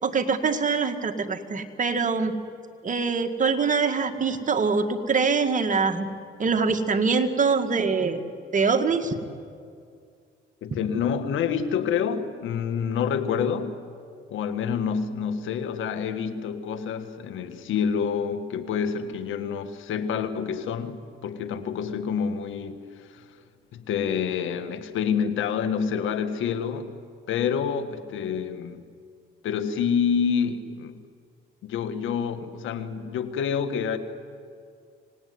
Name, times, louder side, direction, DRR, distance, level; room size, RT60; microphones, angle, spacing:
voice 1, 0.0-2.4 2.8-6.1 6.4-8.2 8.5-9.2, right 5 dB, 40° right, 6 dB, 2.0 m, -24 dB
voice 2, 10.6-13.8 14.3-23.3 23.7-27.0 27.3-28.8 29.4-31.0 31.6-34.0, left 7 dB, 80° left, 10 dB, 1.8 m, -28 dB
26.0 x 18.5 x 9.7 m, 2.3 s
cardioid pair, 90°, 20 cm